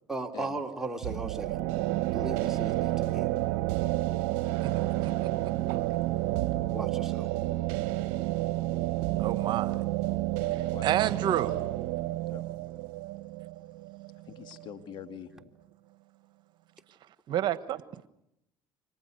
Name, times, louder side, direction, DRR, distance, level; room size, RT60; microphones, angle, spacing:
voice 1, 0.1-1.6 2.1-3.3 6.7-7.3, right 2 dB, 5° right, 3.4 m, -37 dB
sound 1, 1.0-14.7, right 17 dB, 80° right, 0.9 m, -30 dB
voice 2, 9.2-9.7 10.8-11.5 17.3-18.1, right 11 dB, 60° right, 1.4 m, -29 dB
voice 3, 10.4-11.2 12.3-12.4 14.3-15.5, left 9 dB, 60° left, 2.4 m, -45 dB
29.5 x 26.0 x 6.7 m
supercardioid pair, 85°, 9 cm